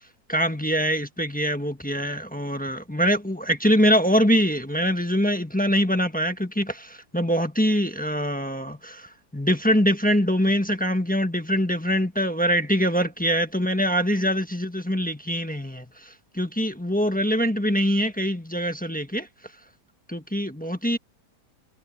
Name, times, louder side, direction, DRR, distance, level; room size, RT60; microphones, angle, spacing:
voice 1, 0.3-19.3 20.1-21.0, equal, 5° left, 1.1 m, -24 dB
omnidirectional pair, 1.8 m